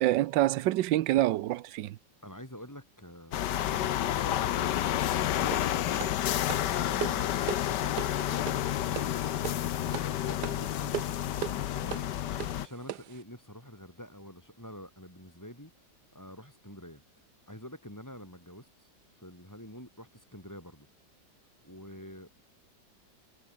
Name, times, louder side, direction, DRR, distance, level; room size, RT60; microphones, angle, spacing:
voice 1, 0.0-2.0, right 15 dB, 85° right, 1.4 m, -26 dB
voice 2, 2.2-6.2 12.5-15.7 16.1-17.0 17.5-18.9 19.2-20.9 21.6-22.3, equal, 10° left, 6.1 m, -47 dB
sound 1, 3.3-12.7, left 12 dB, 75° left, 1.5 m, -30 dB
sound 2, 5.5-13.2, right 12 dB, 70° right, 1.4 m, -40 dB
omnidirectional pair, 1.9 m